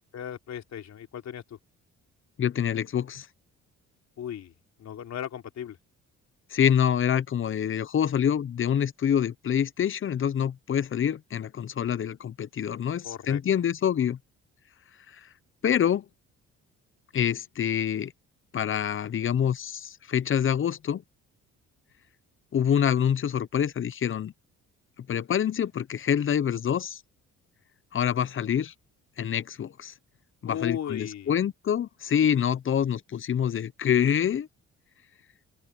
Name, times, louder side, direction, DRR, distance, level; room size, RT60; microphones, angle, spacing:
voice 1, 0.1-1.6 4.2-5.8 13.0-13.4 14.0-14.1 30.4-31.3, left 9 dB, 65° left, 3.2 m, -37 dB
voice 2, 2.4-3.3 6.5-14.2 15.6-16.0 17.1-18.1 18.5-21.0 22.5-24.3 25.1-27.0 27.9-28.7 29.2-29.9 30.4-34.5, left 9 dB, 45° left, 0.8 m, -26 dB
open air
cardioid pair, 90°, 30 cm